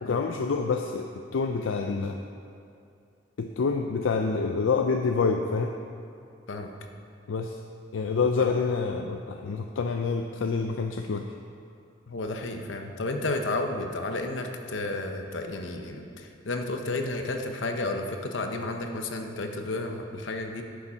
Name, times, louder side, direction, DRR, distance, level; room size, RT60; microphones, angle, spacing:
voice 1, 0.0-2.2 3.4-5.7 7.3-7.6 7.9-11.3, left 4 dB, 85° left, 4 dB, 0.5 m, -27 dB
voice 2, 12.1-20.6, left 2 dB, 70° left, 4 dB, 0.9 m, -32 dB
9.2 x 7.1 x 5.7 m, 2.5 s
head